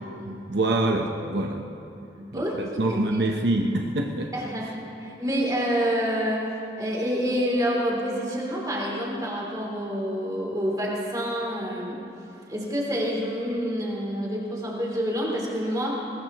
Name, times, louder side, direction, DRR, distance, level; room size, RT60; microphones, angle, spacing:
voice 1, 0.3-1.7 2.3-4.3, right 2 dB, 75° right, 2 dB, 1.0 m, -25 dB
voice 2, 2.0-2.6 2.9-3.2 4.3-4.7 5.0-6.5 6.8-12.0 12.5-16.0, equal, 20° right, -3 dB, 3.1 m, -28 dB
21.0 x 21.0 x 3.1 m, 2.8 s
head